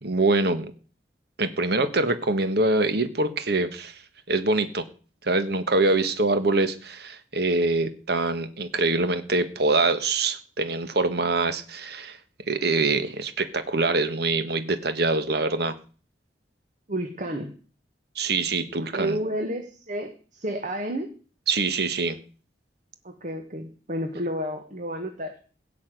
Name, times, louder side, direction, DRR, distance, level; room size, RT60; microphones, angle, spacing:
voice 1, 0.0-0.7 1.4-4.0 4.3-4.8 5.2-12.2 12.5-15.7 18.1-19.2 21.5-22.2, right 3 dB, 65° right, 10 dB, 1.5 m, -24 dB
voice 2, 16.9-17.5 18.9-21.1 23.0-25.4, right 1 dB, 45° right, 5 dB, 1.6 m, -31 dB
16.5 x 6.0 x 9.2 m, 0.39 s
head